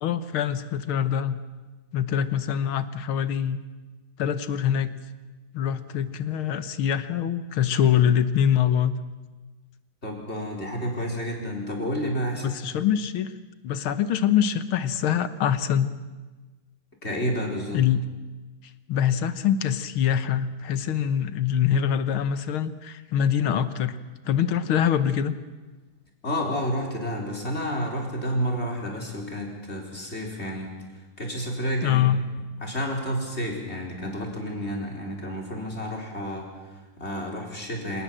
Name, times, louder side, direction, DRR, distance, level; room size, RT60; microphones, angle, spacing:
voice 1, 0.0-1.4 1.9-3.6 4.2-5.0 5.5-8.9 12.4-13.3 13.6-15.9 17.7-18.0 18.9-24.0 24.3-25.3 31.8-32.2, left 9 dB, 90° left, 13 dB, 2.0 m, -24 dB
voice 2, 10.0-12.5 17.0-17.8 26.2-32.0 32.6-38.0, equal, 30° left, 0 dB, 4.6 m, -30 dB
26.0 x 19.0 x 7.6 m, 1.2 s
omnidirectional pair, 2.2 m